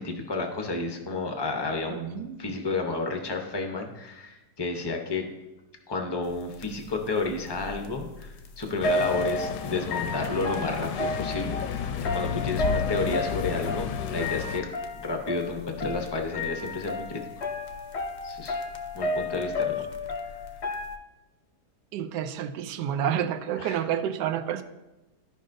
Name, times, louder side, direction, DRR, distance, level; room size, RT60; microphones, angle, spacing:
voice 1, 0.0-5.2 5.9-14.7 14.9-17.3 18.2-18.6 18.9-19.8 23.6-23.8, left 3 dB, 40° left, 3 dB, 0.3 m, -31 dB
voice 2, 1.9-2.4 21.9-24.6, right 9 dB, 80° right, 9 dB, 1.2 m, -29 dB
sound 1, 6.3-6.4 6.6-21.0, left 2 dB, 60° left, 0.7 m, -32 dB
sound 2, 8.8-14.6, left 8 dB, 80° left, 1.1 m, -32 dB
13.0 x 5.3 x 2.6 m, 1.0 s
omnidirectional pair, 1.8 m